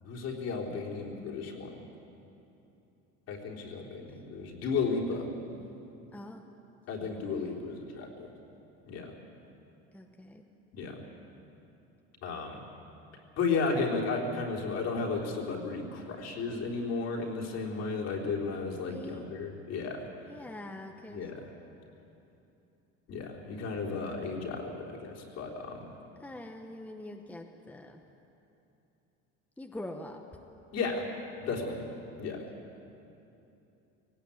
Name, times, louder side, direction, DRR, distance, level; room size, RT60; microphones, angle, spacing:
voice 1, 0.0-1.8 3.3-5.3 6.9-8.3 8.9-9.1 10.7-11.0 12.2-12.6 13.4-20.1 21.1-21.5 23.1-25.9 30.7-31.1 31.4-31.8 32.2-32.4, left 4 dB, 55° left, -1 dB, 3.7 m, -34 dB
voice 2, 5.6-6.4 7.1-7.6 9.9-10.5 18.9-19.3 20.3-21.2 26.2-28.0 29.6-30.2, left 1 dB, 5° left, 3 dB, 1.0 m, -45 dB
18.5 x 18.0 x 8.6 m, 2.9 s
cardioid pair, 130°, 29 cm